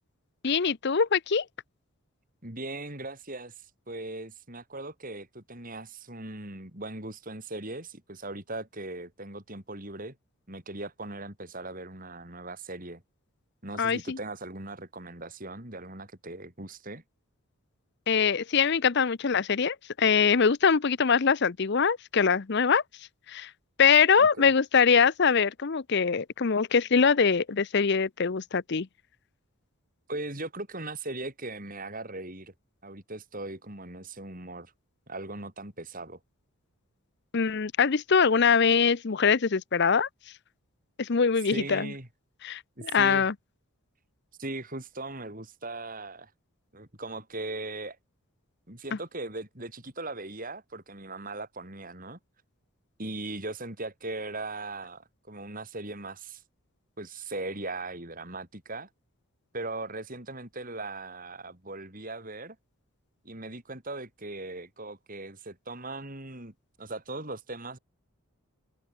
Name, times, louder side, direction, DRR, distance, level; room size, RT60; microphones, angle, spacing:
voice 1, 0.4-1.4 13.8-14.2 18.1-22.8 23.3-23.5 23.8-28.9 37.3-40.1 41.0-41.9 42.4-43.3, left 6 dB, 50° left, 0.6 m, -23 dB
voice 2, 2.4-10.1 10.5-13.0 13.6-17.0 24.1-24.5 30.1-32.5 32.8-34.7 35.1-36.2 41.5-42.1 42.8-43.3 44.4-46.3 46.7-48.0 48.7-52.2 53.0-56.4 57.0-58.9 59.5-62.6 63.2-66.5 66.8-67.8, right 2 dB, 40° right, 5.1 m, -39 dB
head